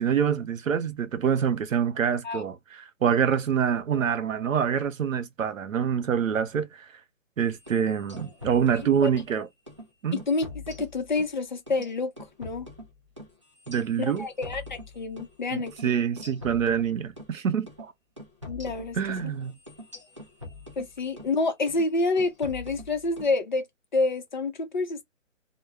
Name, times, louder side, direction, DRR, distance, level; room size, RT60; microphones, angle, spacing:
voice 1, 0.0-6.9 7.4-9.5 10.0-10.2 13.7-14.3 15.5-17.9 19.0-19.6, right 8 dB, 85° right, 0.7 m, -26 dB
sound 1, 7.6-9.3 9.7-9.9 10.2-11.3 11.7-15.4 15.7-15.8 16.2-17.3 17.7-17.9 18.2-21.3 21.7-21.9 22.2-23.3, left 2 dB, 25° right, 0.4 m, -44 dB
voice 2, 10.3-12.1 12.4-12.7 14.0-15.7 18.5-19.0 20.8-23.7 23.9-25.0, left 3 dB, 40° left, 0.7 m, -28 dB
2.2 x 2.1 x 3.3 m
hypercardioid pair, 165°, 38 cm